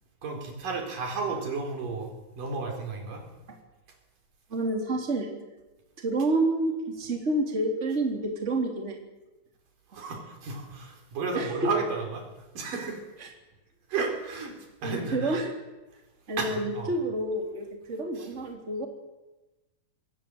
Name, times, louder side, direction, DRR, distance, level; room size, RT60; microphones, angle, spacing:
voice 1, 0.2-2.1 2.4-3.3 9.9-12.3 12.5-13.0 13.9-14.5 14.8-15.4 16.4-16.9 18.2-18.3, right 4 dB, 70° right, 3 dB, 5.7 m, -32 dB
voice 2, 4.5-5.3 6.0-9.0 9.9-10.0 11.3-11.7 13.2-13.3 14.8-15.5 16.3-18.9, right 2 dB, 20° right, 2 dB, 3.5 m, -29 dB
25.5 x 19.5 x 7.9 m, 1.1 s
omnidirectional pair, 4.0 m